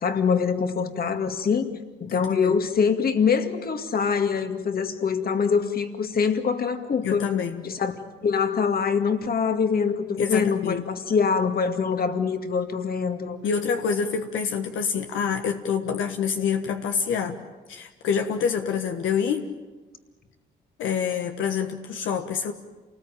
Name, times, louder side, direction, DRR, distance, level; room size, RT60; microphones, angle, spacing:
voice 1, 0.0-1.7 2.0-7.3 7.6-7.9 8.2-13.4, left 6 dB, 50° left, 7 dB, 2.2 m, -24 dB
voice 2, 2.1-2.6 7.0-7.6 10.2-10.8 13.4-17.4 17.7-19.5 20.8-22.5, left 7 dB, 80° left, 5 dB, 1.4 m, -26 dB
28.0 x 19.5 x 9.1 m, 1.3 s
cardioid pair, 90°, 20 cm